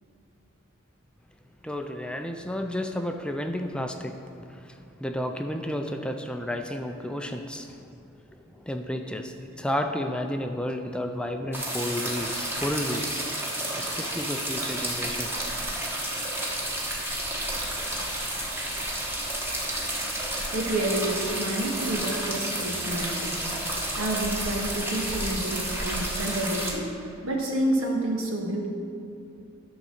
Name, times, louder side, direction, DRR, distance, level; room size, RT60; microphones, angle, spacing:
voice 1, 1.6-4.1 4.6-7.7 8.6-15.6, left 1 dB, 5° left, 5 dB, 0.4 m, -32 dB
sound 1, 11.5-26.7, right 1 dB, 10° right, 1.3 m, -31 dB
voice 2, 20.5-23.5 23.9-28.7, right 1 dB, 85° right, -1 dB, 1.6 m, -29 dB
12.0 x 4.0 x 6.5 m, 2.7 s
head